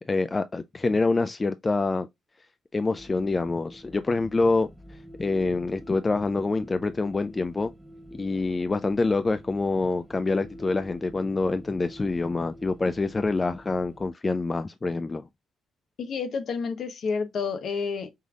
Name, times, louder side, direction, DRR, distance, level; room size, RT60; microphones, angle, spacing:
voice 1, 0.1-2.1 2.7-4.7 5.2-7.7 8.1-15.3, left 3 dB, 25° left, 0.4 m, -26 dB
sound 1, 2.8-14.1, equal, 5° right, 0.9 m, -48 dB
voice 2, 16.0-18.3, left 5 dB, 60° left, 1.0 m, -30 dB
5.5 x 3.3 x 2.4 m
cardioid pair, 90°, 0 cm